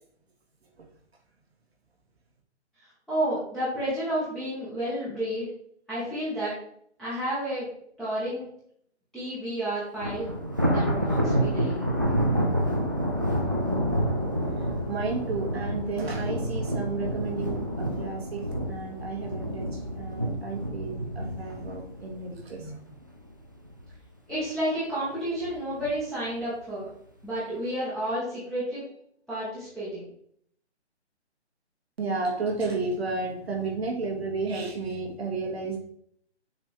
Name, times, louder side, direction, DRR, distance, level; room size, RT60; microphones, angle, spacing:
voice 1, 3.1-5.5 5.9-6.5 7.0-7.7 8.0-8.4 9.1-10.3 10.7-11.9 24.3-26.9 27.2-28.8 29.3-30.0, right 1 dB, ahead, -13 dB, 1.8 m, -31 dB
Thunder, 10.0-23.3 23.7-24.0 24.3-24.4 25.3-25.9, equal, 20° right, 0.3 m, -28 dB
voice 2, 14.9-22.8 32.0-35.8, right 3 dB, 60° right, 0 dB, 2.2 m, -32 dB
7.1 x 4.2 x 3.5 m, 0.67 s
figure-of-eight pair, 150°, 34 cm